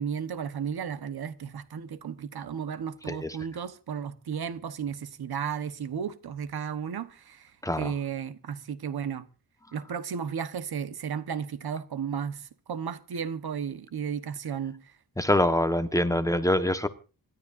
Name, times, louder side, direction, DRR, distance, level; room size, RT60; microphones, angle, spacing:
voice 1, 0.0-7.5 7.8-9.3 9.7-14.9, right 7 dB, 90° right, 1.3 m, -34 dB
voice 2, 15.2-16.9, left 1 dB, 10° left, 1.3 m, -25 dB
27.0 x 13.0 x 2.6 m
wide cardioid pair, 110°, 37 cm